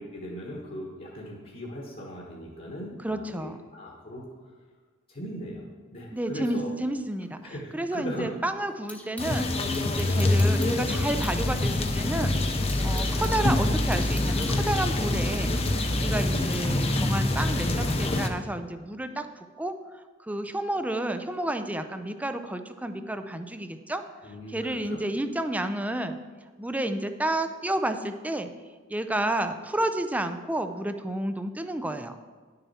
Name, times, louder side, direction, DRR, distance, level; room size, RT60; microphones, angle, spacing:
voice 1, 0.0-4.3 5.1-6.7 7.4-8.3 10.0-10.2 12.8-13.1 16.1-16.2 24.2-25.0, equal, 45° left, -2 dB, 1.3 m, -39 dB
voice 2, 3.0-3.6 6.1-7.4 7.7-9.5 9.8-12.4 12.8-15.5 15.9-19.8 20.2-24.0 24.5-26.2 26.6-28.5 28.9-32.2, right 1 dB, 10° right, 8 dB, 0.4 m, -30 dB
sound 1, 6.2-9.4 9.7-11.5 11.8-11.9 12.3-15.9, left 1 dB, 10° left, 1.0 m, -45 dB
sound 2, 9.2-18.3, left 2 dB, 30° left, 0.7 m, -25 dB
10.5 x 6.8 x 4.2 m, 1.5 s
head